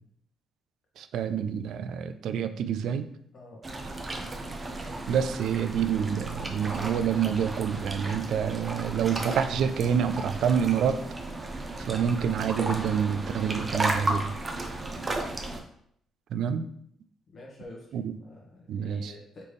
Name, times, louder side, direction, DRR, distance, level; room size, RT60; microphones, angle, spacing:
voice 1, 1.0-3.1 5.1-11.0 11.8-14.3 16.3-16.6 17.9-18.1 18.7-19.1, right 8 dB, 75° right, 10 dB, 0.3 m, -27 dB
sound 1, 3.6-15.6, right 2 dB, 30° right, 0.7 m, -34 dB
voice 2, 17.3-19.5, left 1 dB, 50° left, -3 dB, 1.4 m, -48 dB
4.1 x 3.2 x 3.4 m, 0.69 s
cardioid pair, 90°, 0 cm